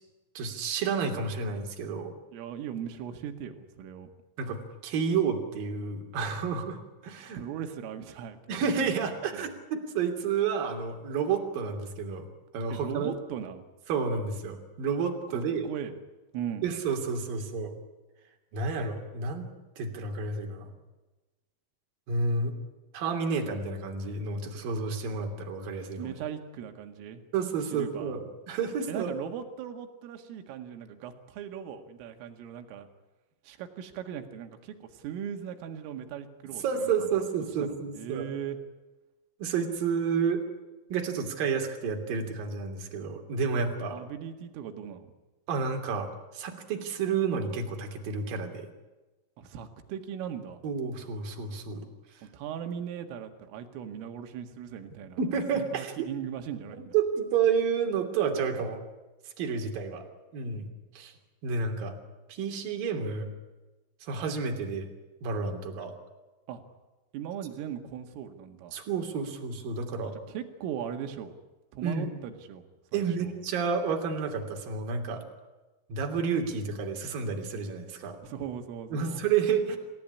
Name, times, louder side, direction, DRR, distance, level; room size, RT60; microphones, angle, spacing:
voice 1, 0.4-2.1 4.4-7.4 8.5-12.3 12.5-13.1 13.9-15.7 16.6-17.7 18.5-19.5 19.8-20.7 22.1-22.6 22.9-26.2 27.3-29.1 36.6-38.3 39.4-40.4 40.9-44.0 45.5-48.7 50.6-51.9 52.1-52.2 55.2-56.0 56.9-58.8 59.4-60.0 60.3-60.7 60.9-61.1 61.4-61.9 62.3-63.3 64.0-64.9 65.2-66.0 68.7-70.1 71.8-72.1 72.9-75.2 75.9-78.2 78.9-79.8, right 5 dB, 50° right, 3 dB, 4.2 m, -30 dB
voice 2, 2.3-4.1 7.3-9.5 12.7-13.7 15.3-15.9 16.3-16.7 26.0-27.2 27.7-28.2 28.9-32.9 33.4-36.9 37.6-38.6 43.9-45.1 49.4-50.6 52.2-55.2 55.5-56.9 66.5-66.6 67.1-68.8 70.3-71.3 71.7-72.6 72.9-73.3 78.2-79.2, right 9 dB, 80° right, 6 dB, 4.4 m, -39 dB
27.5 x 16.5 x 9.9 m, 1.1 s
omnidirectional pair, 5.9 m